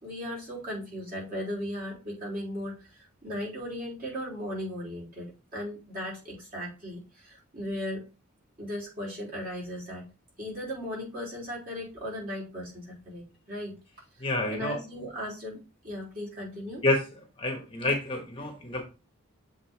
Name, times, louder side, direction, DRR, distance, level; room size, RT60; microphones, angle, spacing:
voice 1, 0.0-8.0 8.6-10.0 10.4-13.7 14.2-15.6 15.8-16.9, equal, 40° right, -6 dB, 3.6 m, -37 dB
voice 2, 14.2-14.8 16.8-17.0 17.4-18.8, left 2 dB, 25° left, 2 dB, 1.1 m, -28 dB
7.5 x 3.6 x 3.4 m, 0.32 s
head